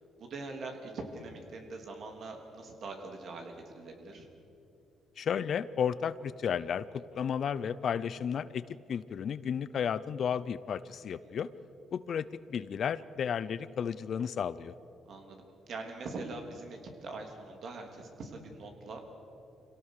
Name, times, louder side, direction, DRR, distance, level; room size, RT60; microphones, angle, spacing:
voice 1, 0.2-4.3 15.1-19.0, right 3 dB, 60° right, 3 dB, 3.4 m, -43 dB
voice 2, 5.2-8.6 8.9-11.5 11.9-14.7, left 7 dB, 60° left, 16 dB, 0.7 m, -33 dB
26.0 x 17.5 x 6.7 m, 2.8 s
cardioid pair, 90°, 0 cm